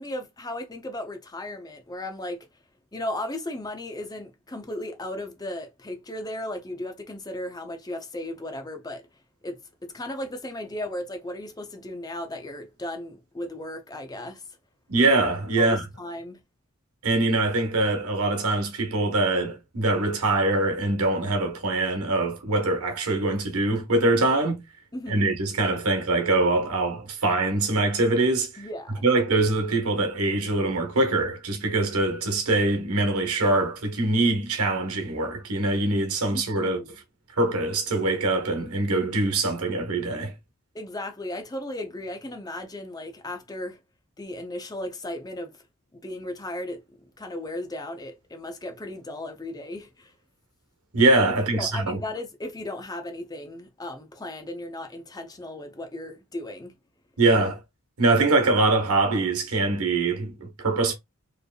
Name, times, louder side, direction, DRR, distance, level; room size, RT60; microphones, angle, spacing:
voice 1, 0.0-2.5 2.9-9.1 9.4-14.5 15.6-16.4 24.9-25.4 28.6-29.0 36.3-37.0 40.7-43.8 44.2-45.6 45.9-50.1 51.5-56.7, left 1 dB, 15° left, 0.6 m, -36 dB
voice 2, 14.9-15.9 17.0-24.6 25.1-28.5 29.0-36.8 37.4-40.3 50.9-52.0 57.2-57.6 58.0-60.9, right 2 dB, 80° right, 1.2 m, -23 dB
4.4 x 3.3 x 2.3 m
head